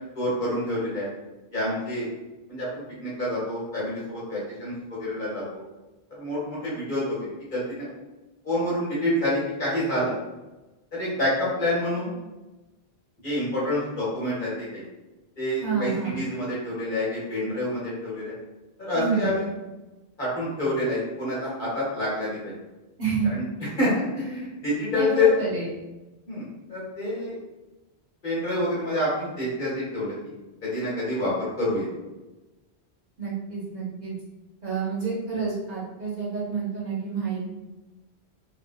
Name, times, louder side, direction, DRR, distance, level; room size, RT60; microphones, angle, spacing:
voice 1, 0.1-1.1 1.5-2.1 2.5-5.4 6.1-7.9 8.4-10.1 10.9-12.1 13.2-14.8 15.4-18.3 18.8-19.4 20.2-22.5 23.3-23.4 23.8-25.3 26.3-27.4 28.2-30.3 30.6-31.9, left 1 dB, 50° left, -7 dB, 1.4 m, -27 dB
voice 2, 15.6-16.2 18.9-19.3 23.0-23.4 24.9-25.7 33.2-34.1 34.6-37.4, right 5 dB, 45° right, -8 dB, 0.9 m, -28 dB
3.3 x 2.3 x 2.2 m, 1.1 s
omnidirectional pair, 1.1 m